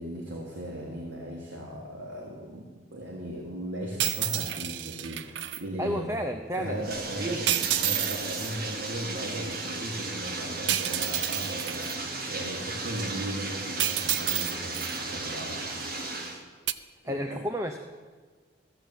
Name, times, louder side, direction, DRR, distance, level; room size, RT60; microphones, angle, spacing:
voice 1, 0.0-6.1 6.5-15.9 17.0-17.4, right 1 dB, 85° right, -1 dB, 1.7 m, -37 dB
sound 1, 4.0-5.6 7.5-8.6 10.7-12.0 13.8-15.0 16.7-16.8, right 12 dB, 70° right, 0.5 m, -29 dB
voice 2, 5.8-6.8 7.2-7.4 17.0-17.8, equal, 15° right, 6 dB, 0.5 m, -31 dB
Bathtub (filling or washing), 6.6-16.4, right 3 dB, 50° right, 1.5 m, -35 dB
14.0 x 7.2 x 8.1 m, 1.5 s
head